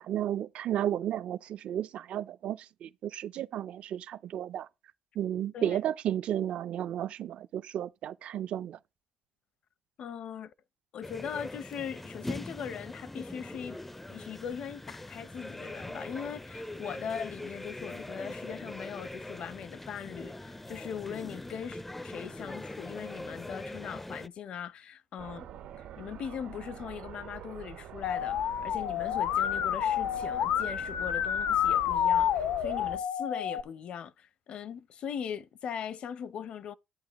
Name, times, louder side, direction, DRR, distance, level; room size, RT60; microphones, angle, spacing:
voice 1, 0.0-4.7 5.2-8.8, right 11 dB, 60° right, 0.5 m, -33 dB
voice 2, 10.0-10.5 10.9-13.8 14.1-25.5 25.8-36.7, left 8 dB, 55° left, 0.7 m, -40 dB
sound 1, 11.0-24.3, left 1 dB, 10° left, 0.4 m, -42 dB
sound 2, 25.2-33.0, right 9 dB, 80° right, 1.8 m, -45 dB
Musical instrument, 28.0-33.6, left 10 dB, 85° left, 0.8 m, -29 dB
12.5 x 8.6 x 3.0 m
cardioid pair, 145°, 2 cm